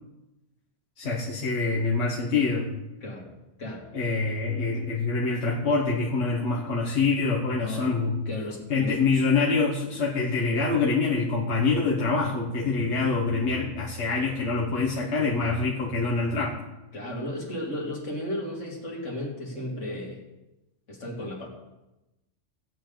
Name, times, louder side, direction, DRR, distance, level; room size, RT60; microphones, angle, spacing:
voice 1, 1.0-2.7 3.9-8.2 8.7-16.6, left 4 dB, 65° left, -3 dB, 1.6 m, -25 dB
voice 2, 7.6-9.0 16.9-20.2 20.9-21.5, left 1 dB, 80° left, -1 dB, 2.7 m, -34 dB
16.0 x 8.8 x 3.9 m, 0.98 s
omnidirectional pair, 1.3 m